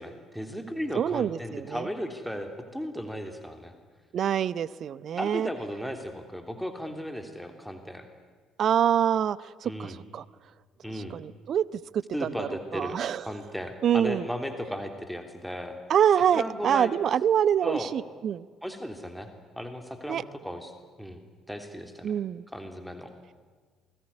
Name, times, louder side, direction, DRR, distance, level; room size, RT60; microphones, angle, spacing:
voice 1, 0.0-3.7 5.2-8.1 9.6-10.0 10.8-11.2 12.1-15.8 16.3-16.9 17.6-17.9 18.6-19.3 19.6-20.7 21.0-22.1 22.5-23.3, equal, ahead, 6 dB, 3.2 m, -36 dB
voice 2, 0.9-1.9 4.1-5.5 8.6-10.2 10.9-13.3 13.8-14.3 15.9-18.5 20.1-20.2 22.0-22.4, right 9 dB, 45° right, 21 dB, 0.7 m, -26 dB
28.0 x 21.0 x 9.6 m, 1.5 s
figure-of-eight pair, 50°, 0 cm